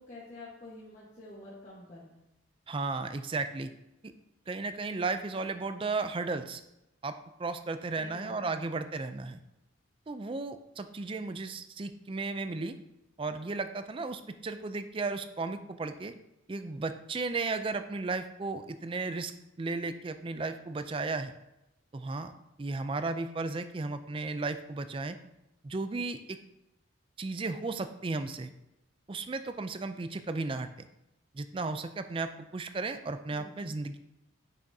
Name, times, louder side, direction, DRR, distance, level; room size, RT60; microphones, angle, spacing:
voice 1, 0.0-2.2 7.9-8.6 33.3-33.8, left 2 dB, 35° left, -7 dB, 1.3 m, -48 dB
voice 2, 2.7-3.7 4.5-6.6 7.0-9.4 10.1-12.8 13.2-16.1 16.5-19.3 19.6-21.3 21.9-22.3 22.6-25.2 25.6-26.4 27.2-28.5 29.1-30.9 31.3-34.0, right 3 dB, 25° right, 10 dB, 0.4 m, -34 dB
9.8 x 6.0 x 2.7 m, 0.89 s
head